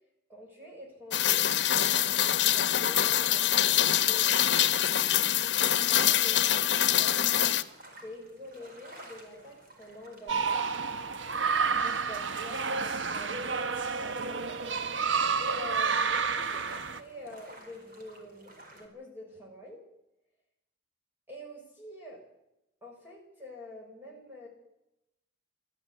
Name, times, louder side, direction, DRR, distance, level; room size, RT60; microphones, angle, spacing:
voice 1, 0.3-5.0 5.6-7.6 8.0-10.7 11.8-14.5 15.4-19.8 21.3-22.2 22.8-24.5, left 1 dB, 10° right, -1 dB, 6.4 m, -47 dB
Rain, 1.1-7.6, left 11 dB, 70° left, 1.1 m, -25 dB
sound 1, 3.6-18.9, right 1 dB, 50° right, 4.5 m, -52 dB
sound 2, 10.3-17.0, right 5 dB, 85° right, 1.1 m, -30 dB
19.5 x 14.0 x 10.0 m, 0.87 s
head